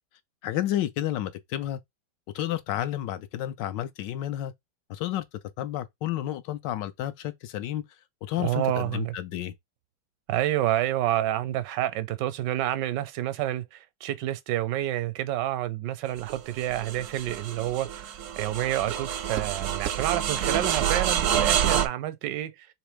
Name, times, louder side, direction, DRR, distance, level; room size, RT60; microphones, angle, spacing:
voice 1, 0.4-1.8 2.3-4.5 4.9-5.2 5.6-7.8 8.2-9.5, left 12 dB, 85° left, 1.3 m, -31 dB
voice 2, 8.4-9.1 10.3-22.7, right 13 dB, 80° right, 1.2 m, -29 dB
sound 1, 16.2-21.9, right 9 dB, 65° right, 0.8 m, -27 dB
3.4 x 3.2 x 4.9 m
omnidirectional pair, 1.9 m